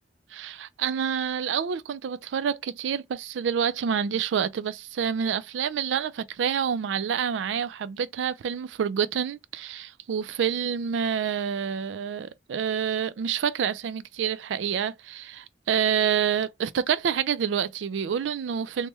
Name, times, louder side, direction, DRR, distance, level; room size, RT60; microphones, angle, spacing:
voice 1, 0.3-18.9, right 7 dB, 90° right, 0.3 m, -28 dB
3.0 x 2.1 x 3.3 m
head